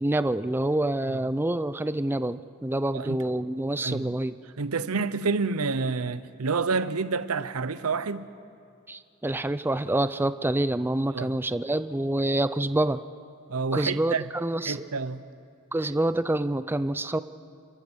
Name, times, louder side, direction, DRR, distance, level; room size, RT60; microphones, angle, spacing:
voice 1, 0.0-4.4 8.9-13.0 13.7-14.8 15.7-17.2, right 1 dB, 10° right, 0.4 m, -27 dB
voice 2, 3.8-4.1 4.6-8.3 11.1-11.3 13.5-14.3 14.6-15.2, right 4 dB, 75° right, 0.8 m, -28 dB
29.5 x 14.0 x 6.2 m
head